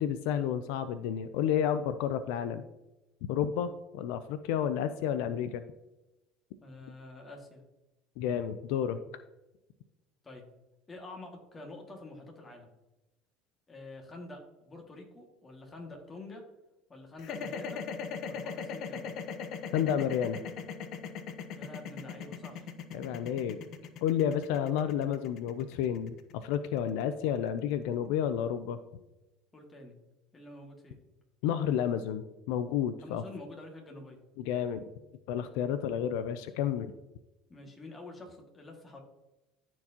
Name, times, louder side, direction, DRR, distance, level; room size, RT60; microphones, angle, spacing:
voice 1, 0.0-2.6 3.3-5.6 8.2-9.0 19.7-20.4 22.9-23.6 24.0-28.8 31.4-33.2 34.4-34.8 35.3-36.9, left 9 dB, 80° left, 11 dB, 0.4 m, -31 dB
voice 2, 6.6-7.6 10.2-10.4 10.9-12.7 13.7-16.4 16.9-17.8 18.3-19.1 21.6-22.7 29.5-29.9 30.3-31.0 33.0-34.2 37.5-39.0, left 2 dB, 20° left, 1 dB, 2.0 m, -47 dB
sound 1, 17.2-27.4, left 6 dB, 55° left, 0.8 m, -39 dB
13.5 x 4.6 x 2.9 m, 1.0 s
supercardioid pair, 110°, 0 cm